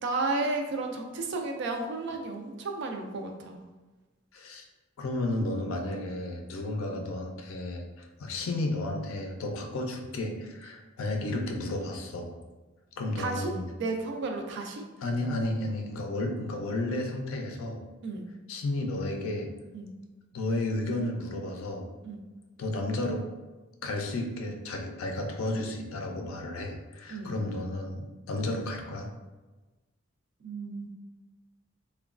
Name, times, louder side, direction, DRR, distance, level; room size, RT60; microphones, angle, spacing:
voice 1, 0.0-3.6 13.2-13.5 13.8-14.9 18.0-18.3 19.7-19.9 22.0-22.2 27.1-27.4 30.4-30.9, right 3 dB, 55° right, 3 dB, 0.3 m, -33 dB
voice 2, 4.3-4.6 5.0-12.3 13.0-13.7 15.0-17.8 18.5-19.5 20.3-21.9 22.6-23.2 23.8-29.1, left 2 dB, 75° left, 2 dB, 0.4 m, -32 dB
3.0 x 2.1 x 2.4 m, 1.2 s
head